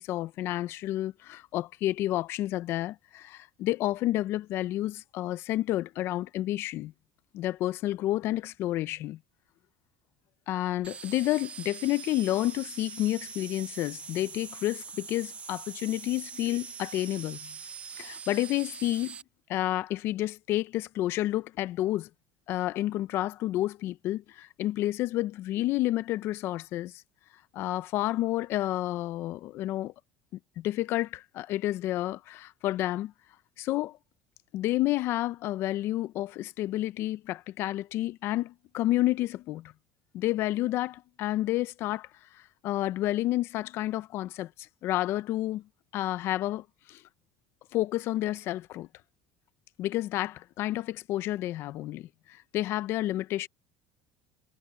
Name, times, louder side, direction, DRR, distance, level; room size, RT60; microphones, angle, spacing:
voice 1, 0.0-6.9 7.3-9.2 10.5-17.5 17.9-19.2 19.5-22.1 22.5-27.0 27.5-29.9 30.6-33.1 33.6-34.0 34.5-39.7 40.1-42.1 42.3-45.6 45.9-47.0 47.7-48.9 49.8-53.5, left 15 dB, 55° left, 0.7 m, -30 dB
sound 1, 10.8-19.2, right 6 dB, 25° right, 0.9 m, -43 dB
cardioid pair, 135°, 5 cm